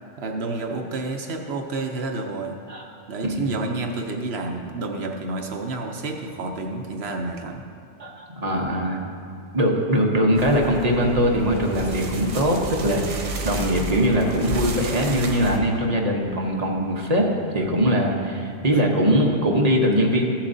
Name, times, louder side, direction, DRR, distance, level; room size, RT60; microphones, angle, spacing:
voice 1, 0.2-2.6 3.1-7.6 17.5-17.8, right 3 dB, 65° right, 3 dB, 0.9 m, -30 dB
voice 2, 8.0-9.0 9.5-17.3 17.5-20.2, equal, 35° right, 0 dB, 0.9 m, -21 dB
sound 1, 10.4-15.6, right 2 dB, 90° right, 1.2 m, -31 dB
14.0 x 7.2 x 2.6 m, 2.3 s
omnidirectional pair, 1.2 m